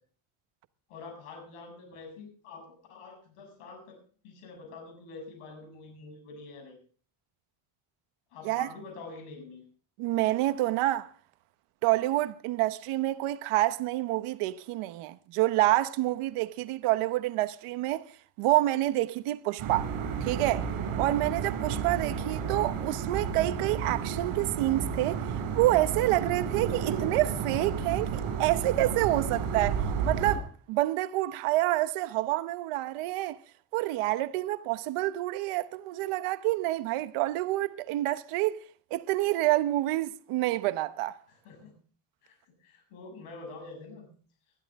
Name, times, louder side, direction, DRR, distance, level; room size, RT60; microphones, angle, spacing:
voice 1, 0.9-4.0 4.2-6.8 8.3-9.6 22.1-22.5 41.3-41.7 42.2-44.1, left 3 dB, 85° left, 7.2 m, -46 dB
voice 2, 10.0-11.1 11.8-18.1 18.4-19.9 20.2-20.7 21.0-33.4 33.7-38.6 38.9-41.2, right 16 dB, 85° right, 1.1 m, -28 dB
sound 1, 19.6-30.4, right 6 dB, 70° right, 6.4 m, -32 dB
21.0 x 13.0 x 3.6 m
cardioid pair, 160°, 50 cm